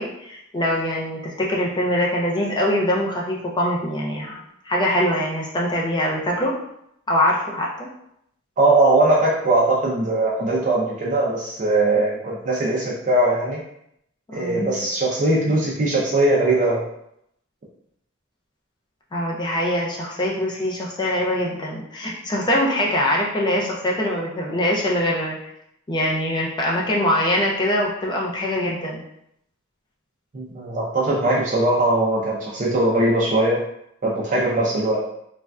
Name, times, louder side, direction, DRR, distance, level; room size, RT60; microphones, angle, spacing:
voice 1, 0.0-6.5 7.1-7.9 14.3-14.7 19.1-25.4 25.9-29.0, left 1 dB, 20° left, -2 dB, 0.4 m, -23 dB
voice 2, 8.6-13.6 14.3-16.8 30.3-33.6 34.0-35.0, right 2 dB, 40° right, -4 dB, 0.5 m, -20 dB
3.1 x 2.5 x 2.2 m, 0.75 s
head